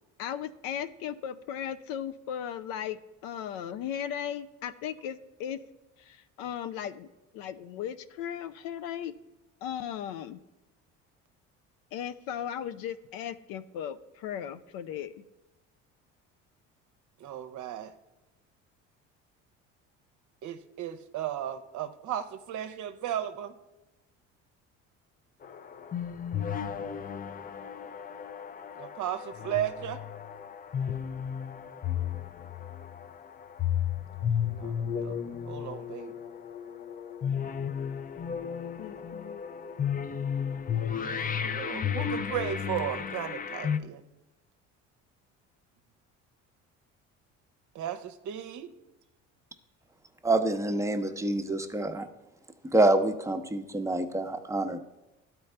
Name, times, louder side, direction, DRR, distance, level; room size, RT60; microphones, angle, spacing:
voice 1, 0.2-5.6 6.0-7.1 7.3-9.2 9.6-10.4 11.9-15.2 38.8-39.4, left 9 dB, 70° left, 12 dB, 0.6 m, -37 dB
voice 2, 17.2-17.9 20.4-23.5 28.8-30.0 34.2-36.1 40.9-44.0 47.7-48.7, right 10 dB, 55° right, 10 dB, 0.8 m, -35 dB
sound 1, 25.4-43.8, left 8 dB, 25° left, 0.4 m, -34 dB
voice 3, 50.2-52.1 52.6-54.8, right 2 dB, 10° right, 6 dB, 0.8 m, -26 dB
13.0 x 4.5 x 3.3 m, 1.0 s
hypercardioid pair, 70°, 36 cm